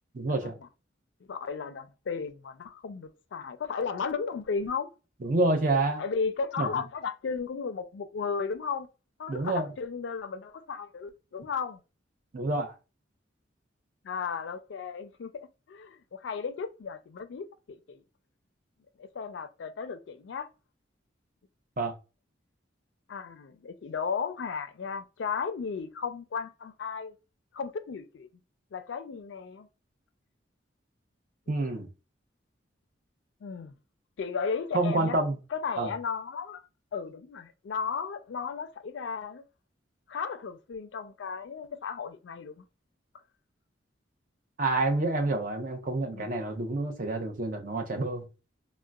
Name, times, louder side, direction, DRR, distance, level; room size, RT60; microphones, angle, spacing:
voice 1, 0.1-0.5 5.2-6.0 6.6-6.8 9.3-9.7 12.3-12.7 21.8-22.0 31.5-31.9 34.7-35.4 35.8-35.9 44.6-48.3, right 2 dB, 45° right, 0.6 m, -28 dB
voice 2, 1.3-4.9 6.0-8.9 9.2-11.8 14.0-18.0 19.0-20.5 23.1-27.1 27.5-28.3 28.7-29.7 33.4-33.7 34.2-35.2 35.5-36.7 36.9-39.4 40.1-42.6 46.1-46.3, left 5 dB, 75° left, 0.4 m, -35 dB
3.7 x 2.1 x 2.2 m
head